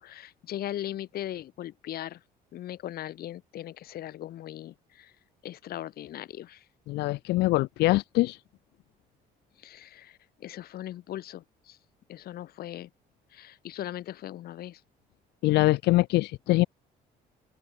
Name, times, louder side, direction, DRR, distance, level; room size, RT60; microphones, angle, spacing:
voice 1, 0.0-2.2 2.5-5.1 5.4-6.6 9.6-11.8 12.1-12.9 13.3-14.8, left 13 dB, 65° left, 2.4 m, -39 dB
voice 2, 6.9-8.4 15.4-16.7, left 19 dB, 80° left, 0.8 m, -23 dB
open air
cardioid pair, 110°, 17 cm